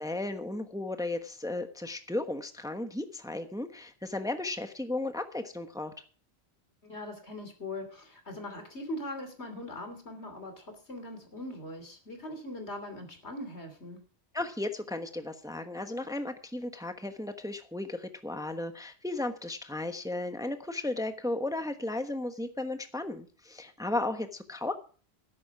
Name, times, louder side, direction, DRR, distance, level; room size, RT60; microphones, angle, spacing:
voice 1, 0.0-5.9 14.3-24.7, left 2 dB, 5° right, 7 dB, 1.1 m, -35 dB
voice 2, 6.8-14.0, left 1 dB, 85° left, 6 dB, 3.3 m, -41 dB
13.5 x 11.0 x 4.7 m, 0.40 s
omnidirectional pair, 1.1 m